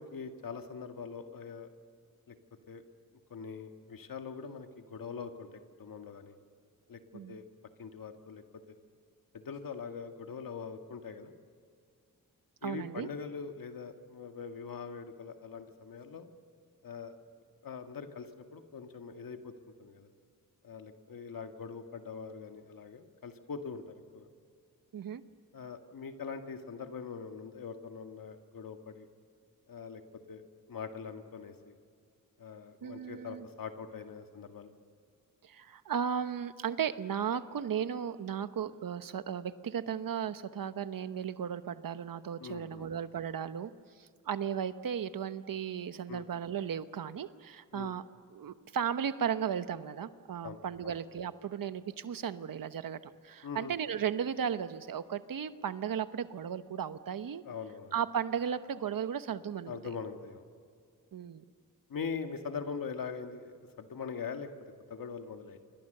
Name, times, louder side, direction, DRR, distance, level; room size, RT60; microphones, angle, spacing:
voice 1, 0.0-1.7 2.3-2.4 2.7-2.8 3.3-6.3 6.9-7.5 7.8-8.8 9.3-11.3 12.6-16.3 16.8-17.1 17.6-20.1 20.6-24.3 25.5-29.1 29.7-30.0 30.3-30.4 30.7-31.8 32.4-34.7 42.4-42.9 46.1-46.3 47.7-47.9 50.4-51.0 53.4-53.8 57.4-57.9 59.7-60.5 61.9-64.5 64.9-65.6, left 5 dB, 80° left, 6 dB, 2.0 m, -42 dB
voice 2, 12.6-13.1 24.9-25.2 32.8-33.5 35.4-43.7 44.0-48.0 48.3-57.4 57.9-59.8 61.1-61.4, right 8 dB, 80° right, 12 dB, 1.1 m, -35 dB
27.5 x 24.0 x 6.8 m, 2.2 s
cardioid pair, 75°, 34 cm